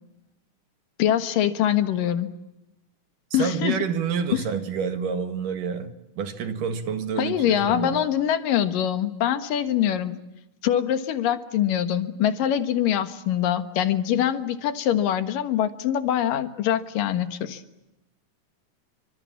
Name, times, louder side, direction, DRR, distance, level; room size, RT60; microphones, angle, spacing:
voice 1, 1.0-2.3 3.3-3.8 4.3-4.4 7.2-10.2 10.6-17.6, left 10 dB, 80° left, 3.1 m, -24 dB
voice 2, 3.4-8.0, right 6 dB, 75° right, 3.5 m, -28 dB
28.5 x 25.5 x 7.4 m
omnidirectional pair, 3.9 m